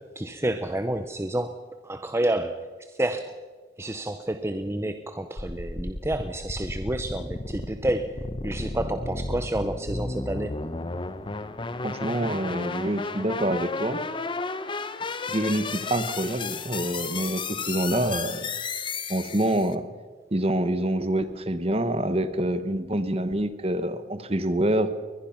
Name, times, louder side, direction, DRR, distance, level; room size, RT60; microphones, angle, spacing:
voice 1, 0.0-1.6 1.8-2.7 3.0-3.3 3.8-10.5, right 1 dB, 15° right, 9 dB, 0.7 m, -29 dB
sound 1, 5.4-19.7, left 3 dB, 30° left, 0.9 m, -33 dB
voice 2, 11.8-14.0 15.3-18.5 19.1-19.8 20.3-24.9, right 1 dB, 35° right, 11 dB, 1.2 m, -26 dB
21.5 x 21.0 x 5.9 m, 1.4 s
head